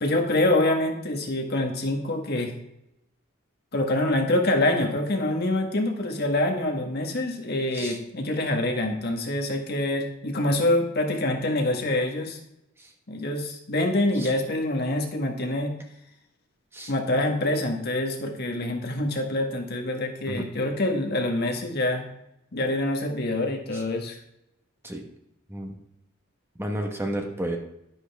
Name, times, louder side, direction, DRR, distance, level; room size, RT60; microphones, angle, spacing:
voice 1, 0.0-2.5 3.7-12.4 13.1-15.7 16.9-22.0 22.5-24.2, left 1 dB, 50° left, 3 dB, 1.5 m, -25 dB
voice 2, 26.6-27.6, right 1 dB, 10° right, 2 dB, 1.2 m, -32 dB
11.0 x 10.0 x 3.5 m, 0.83 s
head